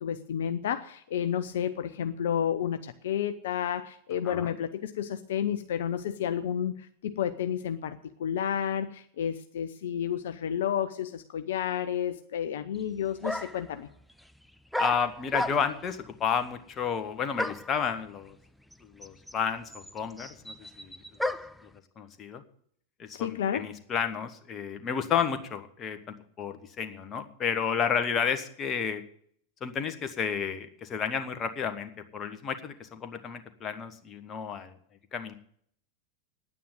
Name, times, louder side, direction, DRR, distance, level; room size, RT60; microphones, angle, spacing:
voice 1, 0.0-13.9 23.1-23.7, left 9 dB, 60° left, 9 dB, 0.7 m, -31 dB
sound 1, 12.7-12.8 13.2-13.7 14.7-15.9 17.4-17.8 18.7-18.8 19.0-21.6, left 1 dB, ahead, 0.5 m, -33 dB
voice 2, 14.8-18.4 19.0-21.3 21.6-21.7 22.0-22.4 23.0-29.0 29.6-34.7 35.1-35.3, left 7 dB, 25° left, 8 dB, 1.4 m, -31 dB
9.6 x 9.3 x 8.9 m, 0.63 s
figure-of-eight pair, 90°, 0 cm